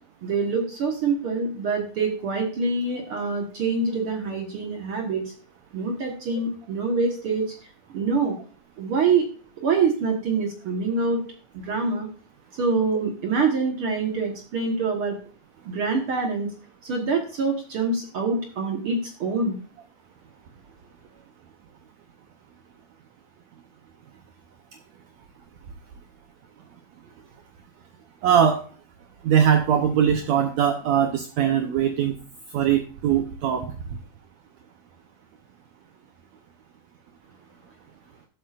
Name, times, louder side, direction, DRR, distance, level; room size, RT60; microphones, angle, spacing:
voice 1, 0.2-5.3 5.7-7.4 7.9-8.4 8.8-9.3 9.6-11.2 11.5-12.1 12.5-15.1 15.6-16.5 16.8-19.6, right 4 dB, 60° right, 2 dB, 1.5 m, -25 dB
voice 2, 28.2-28.6 29.2-32.1 32.5-33.7, right 8 dB, 85° right, 5 dB, 1.5 m, -21 dB
13.0 x 7.8 x 2.5 m, 0.38 s
omnidirectional pair, 4.2 m